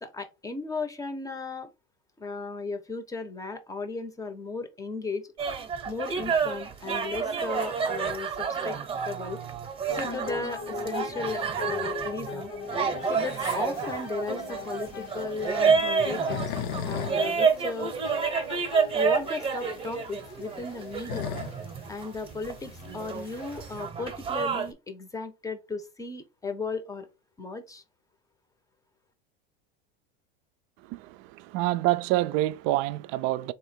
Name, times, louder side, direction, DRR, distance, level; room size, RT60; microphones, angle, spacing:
voice 1, 0.0-1.7 2.2-5.3 5.9-8.8 9.0-9.4 9.9-12.5 13.1-16.5 16.9-17.9 18.9-21.4 21.9-27.1 27.4-27.8, left 4 dB, 10° left, 0.7 m, -35 dB
sound 1, 5.4-24.7, right 6 dB, 20° right, 0.9 m, -29 dB
sound 2, 9.9-20.3, left 4 dB, 75° left, 1.5 m, -39 dB
sound 3, 13.0-23.9, left 8 dB, 60° left, 0.7 m, -39 dB
voice 2, 30.8-33.5, right 16 dB, 55° right, 0.4 m, -27 dB
3.5 x 2.9 x 4.3 m
supercardioid pair, 130°, 29 cm